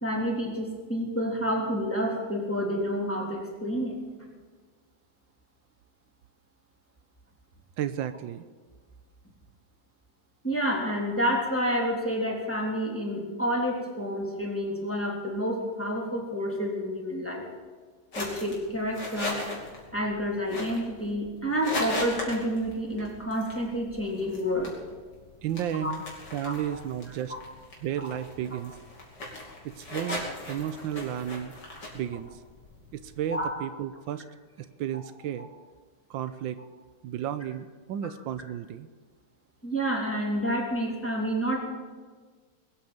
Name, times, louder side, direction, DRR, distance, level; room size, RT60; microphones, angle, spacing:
voice 1, 0.0-4.0 10.4-17.5 18.1-19.4 19.9-24.7 25.8-25.9 26.4-26.5 28.0-28.1 33.3-33.5 39.6-41.6, equal, 5° left, -2 dB, 3.4 m, -29 dB
voice 2, 7.8-8.4 25.4-26.0 26.3-27.3 27.8-28.7 29.6-31.5 31.9-32.4 32.9-34.2 34.6-35.5 36.1-36.6 37.0-38.9, right 10 dB, 85° right, 12 dB, 1.4 m, -33 dB
sound 1, 18.1-33.5, left 1 dB, 65° left, 4.0 m, -39 dB
21.0 x 8.8 x 7.2 m, 1.5 s
omnidirectional pair, 2.0 m